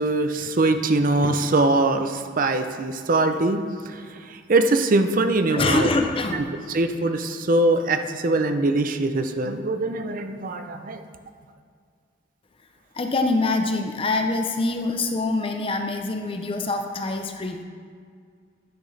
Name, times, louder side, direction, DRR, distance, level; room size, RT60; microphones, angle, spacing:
voice 1, 0.0-3.6 3.9-5.9 6.3-11.0, right 2 dB, 45° right, 8 dB, 0.5 m, -22 dB
voice 2, 5.5-6.5 12.9-17.6, left 3 dB, 30° left, 5 dB, 0.6 m, -24 dB
10.0 x 6.1 x 4.0 m, 2.1 s
head